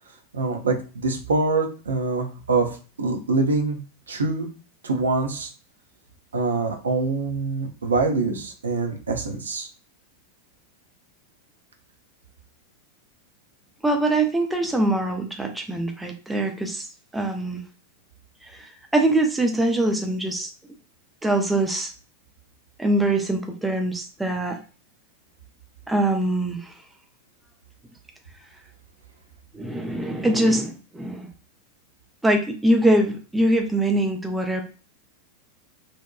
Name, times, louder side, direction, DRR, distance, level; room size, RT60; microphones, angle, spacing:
voice 1, 0.3-2.7 3.0-3.8 4.1-4.5 4.8-5.5 6.3-9.7, right 3 dB, 70° right, 3 dB, 0.5 m, -24 dB
voice 2, 13.8-16.8 17.1-17.6 18.5-20.5 21.2-21.9 22.8-24.6 25.9-26.7 29.5-31.3 32.2-34.6, right 1 dB, 5° right, 4 dB, 0.4 m, -23 dB
2.7 x 2.1 x 2.3 m, 0.36 s
figure-of-eight pair, 90°, 0 cm